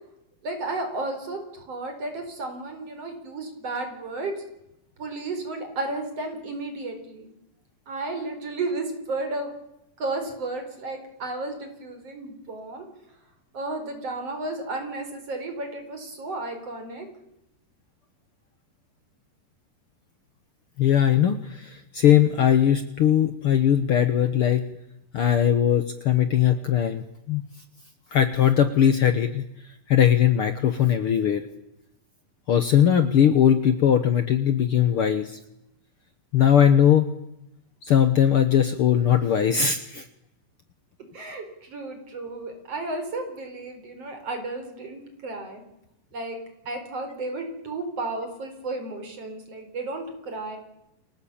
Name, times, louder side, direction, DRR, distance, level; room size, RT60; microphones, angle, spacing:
voice 1, 0.4-4.3 5.0-7.3 7.9-9.5 10.0-12.8 13.5-17.1 41.1-45.6 46.1-46.4 46.7-50.6, right 2 dB, 45° right, 6 dB, 5.3 m, -33 dB
voice 2, 20.8-24.7 25.1-27.4 28.1-29.4 29.9-31.4 32.5-35.4 36.3-37.1 37.8-40.0, left 9 dB, 70° left, 10 dB, 1.3 m, -20 dB
29.0 x 19.0 x 8.7 m, 0.87 s
omnidirectional pair, 4.0 m